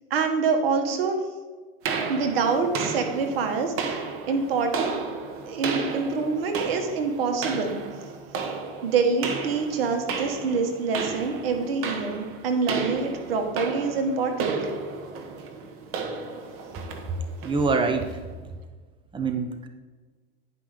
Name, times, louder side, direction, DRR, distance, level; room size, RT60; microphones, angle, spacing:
voice 1, 0.1-1.2 2.1-4.0 4.3-4.9 5.4-7.8 8.8-14.5, right 4 dB, 80° right, 5 dB, 1.6 m, -26 dB
sound 1, 1.8-18.2, right 5 dB, 50° right, 1.5 m, -33 dB
voice 2, 17.4-18.1 19.1-19.7, right 4 dB, 15° right, 7 dB, 0.9 m, -24 dB
10.0 x 5.7 x 5.1 m, 1.4 s
hypercardioid pair, 105°, 29 cm